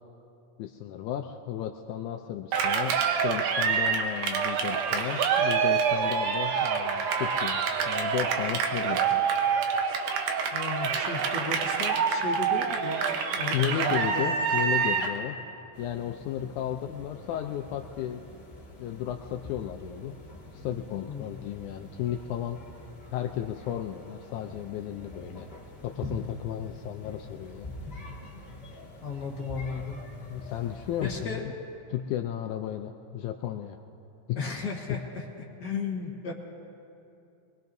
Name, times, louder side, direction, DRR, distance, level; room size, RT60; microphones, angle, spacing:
voice 1, 0.6-2.9 3.2-9.4 13.5-15.4 15.8-18.2 18.8-20.1 20.5-22.6 23.1-25.5 25.8-27.7 30.3-31.4 31.9-33.8 34.3-34.4, left 10 dB, 80° left, 4 dB, 1.9 m, -34 dB
Cheering, 2.5-15.2, right 6 dB, 80° right, 2.5 m, -26 dB
voice 2, 10.5-14.3 21.1-21.4 29.0-30.0 31.0-31.4 34.3-35.3 35.6-36.3, left 4 dB, 50° left, -1 dB, 1.3 m, -35 dB
sound 1, 15.7-31.3, left 1 dB, 25° left, 1.6 m, -45 dB
24.0 x 21.5 x 2.7 m, 2.7 s
omnidirectional pair, 3.6 m